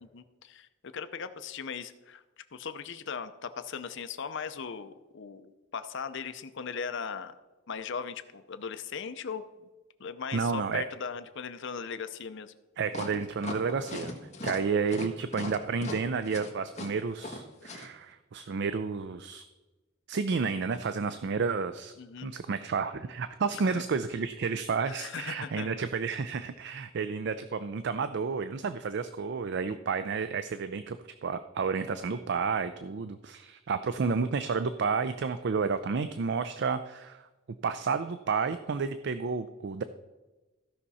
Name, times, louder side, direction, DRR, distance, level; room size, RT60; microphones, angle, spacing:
voice 1, 0.0-0.7 0.9-2.2 2.5-7.3 7.7-9.7 10.0-12.5 14.4-14.6 22.0-22.3 23.5-23.8 24.8-25.8 29.7-29.8, left 6 dB, 65° left, 11 dB, 0.6 m, -38 dB
voice 2, 10.3-10.9 12.8-14.1 14.4-19.4 20.1-21.9 22.2-31.0 31.2-37.3 37.6-39.8, right 5 dB, 60° right, 11 dB, 0.4 m, -31 dB
sound 1, 12.9-17.9, left 2 dB, 35° left, 1.5 m, -39 dB
15.5 x 5.8 x 4.2 m, 1.1 s
head